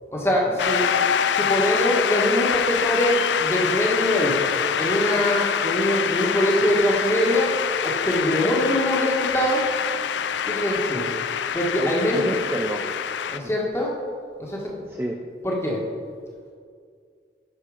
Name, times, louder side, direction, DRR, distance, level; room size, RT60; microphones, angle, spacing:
voice 1, 0.1-0.9 1.3-4.4 4.8-7.5 7.8-9.8 10.5-11.1 11.5-12.3 13.3-14.0 14.4-14.8 15.4-15.8, equal, 15° left, -2 dB, 1.5 m, -23 dB
Shout / Cheering / Applause, 0.6-13.4, left 8 dB, 85° left, 0.4 m, -25 dB
voice 2, 11.8-12.9 13.3-13.5 15.0-15.2, right 1 dB, 15° right, 1 dB, 0.5 m, -30 dB
9.9 x 6.5 x 4.9 m, 2.1 s
head